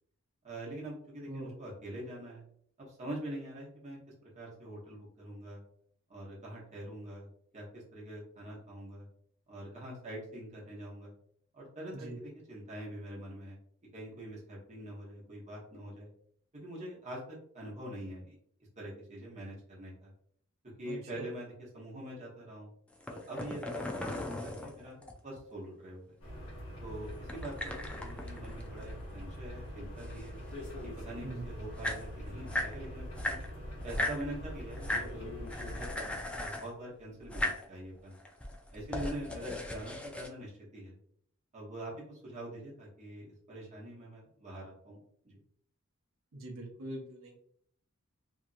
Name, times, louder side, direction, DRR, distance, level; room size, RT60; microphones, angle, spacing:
voice 1, 0.4-2.4 2.8-5.6 6.1-7.3 7.5-9.1 9.5-11.1 11.5-13.6 13.9-16.1 16.5-18.4 18.8-20.1 20.8-22.7 23.1-25.0 25.2-26.1 26.8-30.4 30.8-33.4 33.8-38.2 38.7-41.0 41.5-45.4, right 1 dB, 35° right, -5 dB, 1.0 m, -44 dB
voice 2, 20.9-21.3 31.2-31.4 46.3-47.4, right 1 dB, 70° right, 0 dB, 0.7 m, -43 dB
sound 1, 22.9-25.4 27.2-29.3 29.6-30.8 31.4-31.5 31.7-32.8 33.1-34.2 34.7-35.1 35.5-36.7 37.2-37.7 38.2-40.3, left 1 dB, 5° left, 0.3 m, -37 dB
sound 2, 26.2-36.0, equal, 70° left, 1.0 m, -43 dB
2.9 x 2.5 x 2.5 m, 0.65 s
head